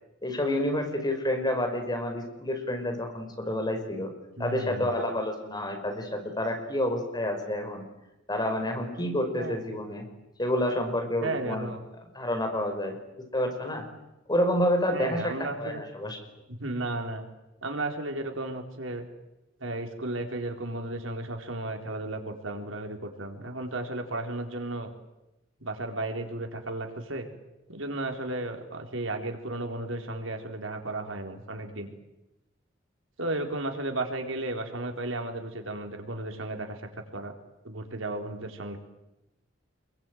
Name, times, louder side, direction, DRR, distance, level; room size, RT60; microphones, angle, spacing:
voice 1, 0.2-4.1 4.4-7.8 8.3-10.1 10.4-11.7 12.2-13.0 13.3-13.9 14.3-16.2, left 1 dB, 20° left, 4 dB, 5.4 m, -29 dB
voice 2, 4.4-4.9 9.3-9.6 11.2-11.8 14.9-15.8 16.5-17.2 17.6-19.0 19.6-24.9 25.6-27.3 27.7-31.9 33.2-36.8 37.1-37.3 37.6-38.8, right 2 dB, 90° right, 4 dB, 4.0 m, -34 dB
27.0 x 22.5 x 9.3 m, 0.94 s
head